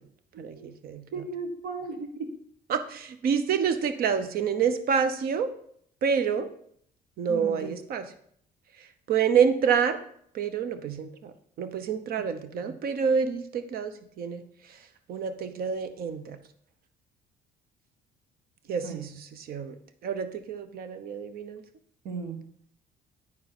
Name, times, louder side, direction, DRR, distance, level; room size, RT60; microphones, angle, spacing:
voice 1, 0.4-1.1 2.7-5.5 6.0-6.5 7.2-8.1 8.8-10.0 10.3-14.8 15.1-16.4 18.7-19.8 20.0-21.6, right 6 dB, 60° right, 10 dB, 0.9 m, -28 dB
voice 2, 1.1-2.3 7.3-7.7 12.6-12.7 18.8-19.0 22.0-22.4, right 4 dB, 80° right, 5 dB, 1.6 m, -35 dB
9.8 x 4.7 x 6.0 m, 0.65 s
cardioid pair, 110°, 17 cm